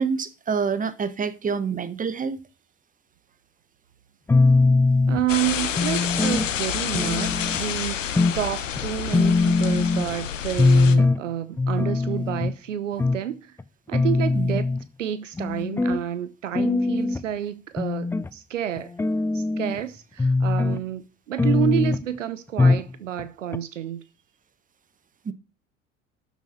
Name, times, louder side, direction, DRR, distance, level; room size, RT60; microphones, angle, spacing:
voice 1, 0.0-2.4 14.3-14.6 25.2-25.3, right 6 dB, 20° right, 1.4 m, -27 dB
sound 1, 4.3-5.3 5.8-6.5 6.9-7.6 8.2-8.4 8.8-8.9 9.1-10.1 10.6-11.2 11.6-12.6 13.0-13.2 13.6-13.7 13.9-14.8 15.4-16.0 16.5-17.2 17.8-18.3 18.8-19.8 20.2-20.8 21.4-22.0 22.6-22.9 23.2-23.3 23.5-23.6, left 3 dB, 5° left, 0.4 m, -21 dB
voice 2, 5.1-13.6 13.9-14.7 15.0-18.9 19.3-24.0, right 11 dB, 75° right, 0.9 m, -29 dB
sound 2, 5.3-11.0, left 9 dB, 75° left, 1.2 m, -29 dB
12.5 x 7.2 x 4.5 m
figure-of-eight pair, 70°, 38 cm